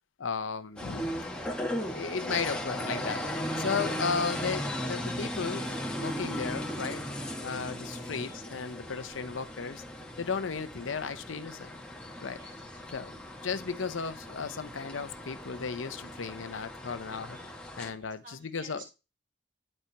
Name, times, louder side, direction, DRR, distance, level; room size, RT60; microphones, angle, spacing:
voice 1, 0.2-1.1 1.7-3.2 3.6-7.0 7.4-9.8 10.2-11.8 12.2-12.4 12.9-13.2 13.4-17.4 17.8-18.9, left 5 dB, 90° left, 0.7 m, -35 dB
sound 1, 0.8-17.9, equal, 5° left, 1.5 m, -37 dB
voice 2, 12.3-12.8 18.0-18.9, right 3 dB, 45° right, 1.9 m, -52 dB
11.5 x 4.4 x 3.4 m
head